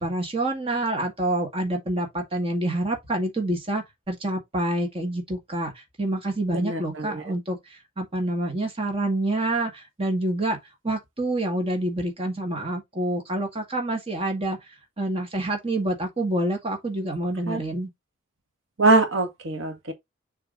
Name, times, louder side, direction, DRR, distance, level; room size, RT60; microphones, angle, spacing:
voice 1, 0.0-5.7 6.0-7.6 8.0-10.6 10.8-14.6 15.0-17.9, right 1 dB, 30° right, 1.9 m, -27 dB
voice 2, 6.5-7.3 17.5-17.6 18.8-19.9, right 3 dB, 75° right, 1.6 m, -23 dB
7.0 x 3.5 x 4.0 m
head